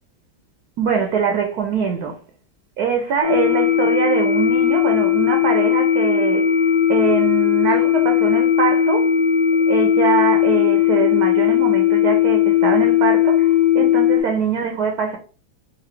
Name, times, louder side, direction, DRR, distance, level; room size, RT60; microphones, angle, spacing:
voice 1, 0.8-2.2 2.8-6.6 6.9-9.1 9.7-15.2, right 7 dB, 70° right, 0.9 m, -23 dB
sound 1, 3.2-14.2, left 10 dB, 75° left, 1.6 m, -17 dB
3.9 x 2.6 x 3.2 m
omnidirectional pair, 2.2 m